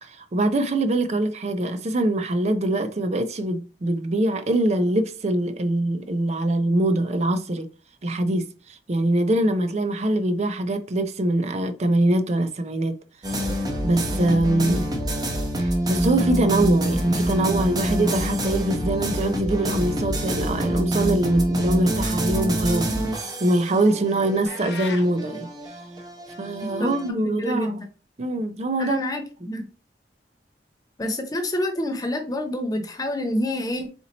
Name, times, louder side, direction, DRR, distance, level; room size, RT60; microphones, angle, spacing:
voice 1, 0.0-7.7 8.0-13.0 13.3-13.4 13.8-14.9 15.6-25.5 26.4-27.8 28.2-29.0, right 1 dB, 40° right, 0.5 m, -23 dB
sound 1, 13.2-27.1, equal, 25° right, 0.9 m, -26 dB
sound 2, 24.5-25.1, left 5 dB, 90° left, 0.8 m, -35 dB
voice 2, 26.6-27.8 28.8-29.7 31.0-33.9, left 1 dB, 20° left, 0.6 m, -28 dB
4.3 x 2.7 x 4.0 m
head